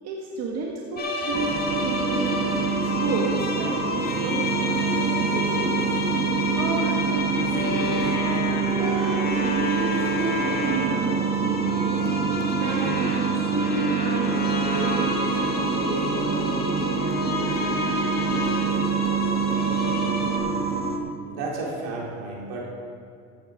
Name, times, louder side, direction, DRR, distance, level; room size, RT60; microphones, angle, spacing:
voice 1, 0.0-2.5 2.8-6.0 6.5-8.1 8.6-12.1 12.6-16.9, right 4 dB, 50° right, -1 dB, 1.7 m, -32 dB
voice 2, 0.8-1.3 21.3-22.7, right 2 dB, 75° right, -3 dB, 3.7 m, -33 dB
sound 1, 1.0-20.4, left 2 dB, 25° left, 1.8 m, -30 dB
sound 2, 1.3-21.0, right 5 dB, 20° right, 1.4 m, -26 dB
15.0 x 9.3 x 5.0 m, 2.3 s
supercardioid pair, 120°, 34 cm